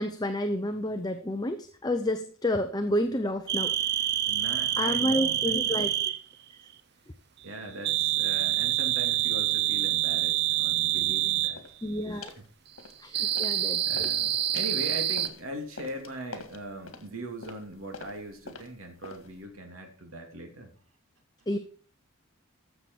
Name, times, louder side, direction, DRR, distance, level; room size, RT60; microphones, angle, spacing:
voice 1, 0.0-3.7 4.8-5.9 11.8-12.3 13.0-14.1 21.5-21.6, left 1 dB, 20° left, 7 dB, 0.7 m, -29 dB
sound 1, 3.5-6.2 7.8-11.6 13.1-15.3, right 13 dB, 50° right, 0.7 m, -27 dB
voice 2, 4.3-5.9 7.4-11.7 12.1-12.2 13.1-13.4 13.8-20.7, right 1 dB, 75° right, 4 dB, 2.7 m, -40 dB
sound 2, 11.5-11.8 12.2-12.5 12.8-13.6 13.9-19.4, left 3 dB, 70° left, 1.8 m, -46 dB
14.0 x 6.9 x 4.6 m, 0.43 s
head